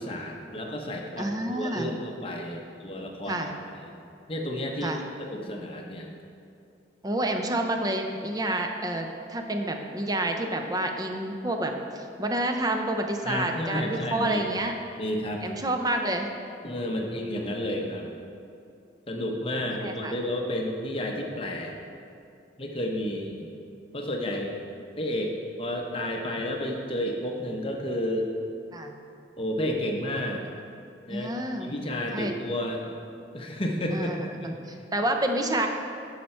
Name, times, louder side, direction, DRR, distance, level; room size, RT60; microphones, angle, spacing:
voice 1, 0.0-3.4 3.7-3.9 4.3-6.1 13.2-14.4 15.0-15.4 16.6-18.1 19.1-21.7 22.6-23.3 23.9-24.6 25.0-28.3 29.4-30.4 31.1-31.3 31.6-32.8 33.3-34.1 34.4-34.6, left 1 dB, 30° left, 1 dB, 0.8 m, -31 dB
voice 2, 1.2-1.9 3.3-3.5 4.8-5.0 7.0-14.7 15.4-16.3 16.9-17.2 19.8-20.1 28.7-29.0 31.1-31.7 32.1-32.3 33.9-35.7, right 1 dB, 20° right, 4 dB, 0.6 m, -29 dB
11.0 x 5.7 x 4.4 m, 2.6 s
head